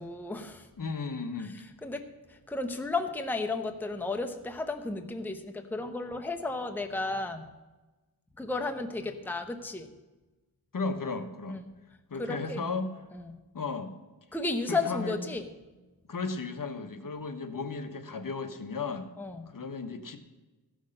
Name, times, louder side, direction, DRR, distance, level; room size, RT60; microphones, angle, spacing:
voice 1, 0.0-0.7 1.4-7.5 8.4-9.9 11.5-11.6 12.2-12.6 13.1-13.4 14.3-15.5 19.2-19.5, left 3 dB, 5° left, 6 dB, 0.8 m, -33 dB
voice 2, 0.8-1.5 10.7-11.6 12.1-12.9 13.5-13.9 14.7-15.2 16.1-19.1 19.5-20.2, left 4 dB, 50° left, 8 dB, 1.1 m, -34 dB
14.5 x 6.4 x 6.5 m, 1.2 s
wide cardioid pair, 95°, 41 cm